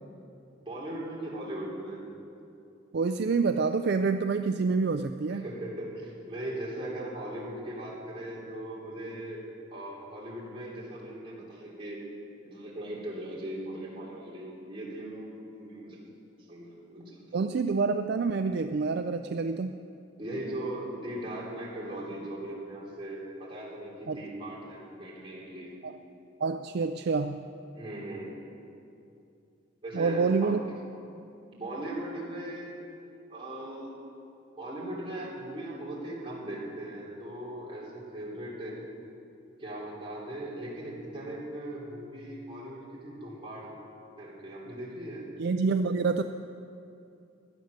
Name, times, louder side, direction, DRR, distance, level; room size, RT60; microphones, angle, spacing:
voice 1, 0.6-2.0 5.3-9.4 9.7-12.0 12.4-16.0 16.5-17.2 20.2-25.7 27.7-28.4 29.8-30.5 31.5-34.0 34.6-38.8 39.6-43.7 44.2-45.3, right 1 dB, 25° right, -5 dB, 3.3 m, -39 dB
voice 2, 2.9-5.4 17.3-19.8 24.1-24.2 25.8-26.0 26.4-27.5 29.9-30.6 45.4-46.2, right 4 dB, 55° right, 9 dB, 0.4 m, -27 dB
16.0 x 10.5 x 6.6 m, 2.6 s
head